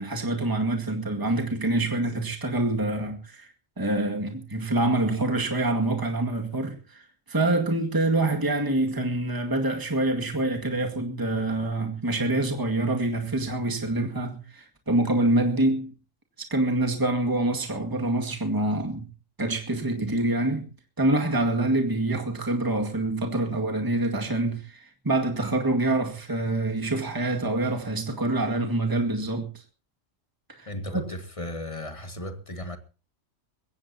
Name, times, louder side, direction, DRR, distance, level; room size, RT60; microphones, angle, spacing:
voice 1, 0.0-3.5 3.8-7.0 7.3-15.9 16.5-19.1 19.4-20.7 21.0-29.5 30.5-30.7 30.9-31.0, right 2 dB, 15° right, 2.1 m, -26 dB
voice 2, 30.7-32.8, left 1 dB, 25° left, 1.9 m, -35 dB
22.0 x 17.0 x 2.8 m
omnidirectional pair, 1.3 m